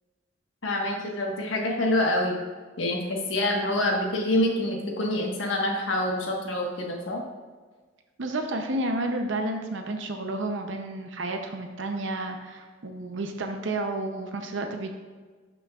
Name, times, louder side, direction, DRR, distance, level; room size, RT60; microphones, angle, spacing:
voice 1, 0.6-2.4 2.8-7.2, left 1 dB, 75° left, 0 dB, 1.4 m, -26 dB
voice 2, 8.2-14.9, right 2 dB, 70° right, 4 dB, 0.7 m, -31 dB
12.0 x 6.0 x 2.4 m, 1.4 s
head